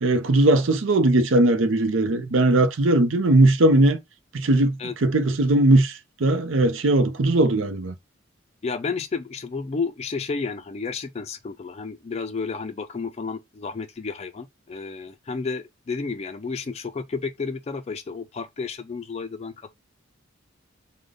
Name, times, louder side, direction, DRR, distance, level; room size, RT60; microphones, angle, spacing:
voice 1, 0.0-4.0 4.3-7.9, right 2 dB, 70° right, 0.6 m, -19 dB
voice 2, 8.6-19.7, left 4 dB, 35° left, 0.4 m, -31 dB
4.9 x 2.2 x 3.9 m
head